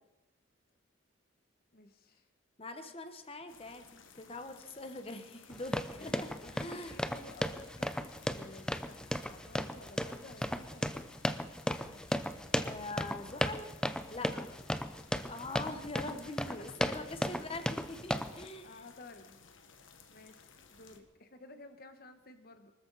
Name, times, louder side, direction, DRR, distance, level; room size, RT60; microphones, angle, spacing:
voice 1, 1.7-2.3 5.9-11.2 14.2-14.6 16.2-17.4 18.1-19.4 20.1-22.7, left 2 dB, 50° left, 8 dB, 1.4 m, -54 dB
voice 2, 2.6-6.3 6.5-7.0 12.6-13.7 14.1-14.3 15.3-18.7, left 2 dB, 30° left, 8 dB, 1.2 m, -43 dB
sound 1, 3.5-21.0, left 5 dB, 80° left, 1.5 m, -58 dB
sound 2, 5.5-18.5, equal, 5° left, 0.5 m, -36 dB
24.0 x 13.5 x 4.1 m, 1.0 s
head